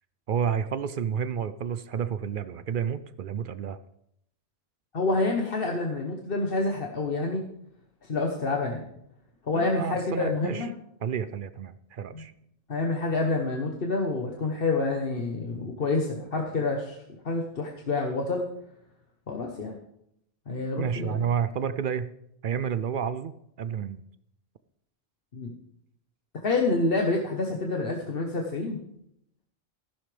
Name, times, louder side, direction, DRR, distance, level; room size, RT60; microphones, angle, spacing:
voice 1, 0.3-3.8 9.5-10.7 11.0-12.3 20.8-22.1 22.4-24.0, right 7 dB, 60° right, 13 dB, 0.6 m, -30 dB
voice 2, 4.9-7.5 8.0-8.8 9.4-10.7 12.1-12.2 12.7-18.5 19.3-19.8 20.5-21.2 25.3-25.5 26.4-28.8, left 3 dB, 60° left, 1 dB, 1.3 m, -28 dB
14.5 x 11.5 x 3.4 m, 0.75 s
omnidirectional pair, 1.1 m